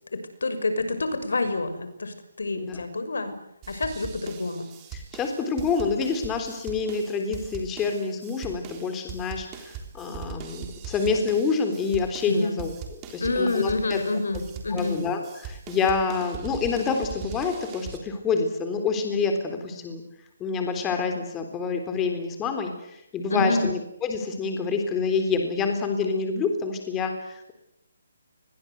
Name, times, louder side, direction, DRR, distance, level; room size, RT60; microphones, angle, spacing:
voice 1, 0.1-3.3 3.7-4.7 12.3-12.6 13.2-15.0 23.3-23.7, left 2 dB, 85° left, 10 dB, 6.2 m, -28 dB
sound 1, 3.6-18.0, right 7 dB, 15° right, 3.8 m, -41 dB
voice 2, 4.9-12.7 13.1-14.0 14.7-20.0 20.4-27.5, left 5 dB, 10° left, 5 dB, 3.7 m, -27 dB
30.0 x 22.5 x 8.2 m, 0.81 s
hypercardioid pair, 165°, 0 cm